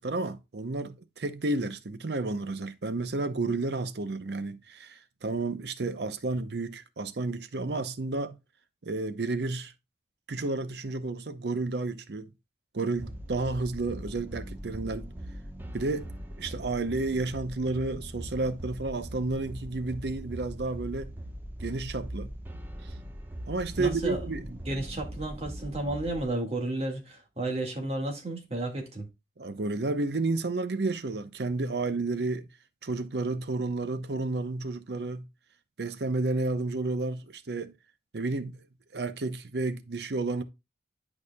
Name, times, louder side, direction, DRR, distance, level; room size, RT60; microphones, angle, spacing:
voice 1, 0.0-8.4 8.8-9.7 10.3-12.3 12.7-15.1 15.7-16.1 16.4-21.2 21.6-22.3 23.5-24.5 29.4-32.5 32.8-35.2 35.8-37.7 38.1-38.6 38.9-40.4, right 3 dB, 60° right, 0.7 m, -31 dB
sound 1, 13.0-26.3, equal, 10° right, 0.9 m, -41 dB
voice 2, 23.8-24.2 24.5-29.1, right 1 dB, 35° right, 1.8 m, -32 dB
11.0 x 4.9 x 2.2 m
head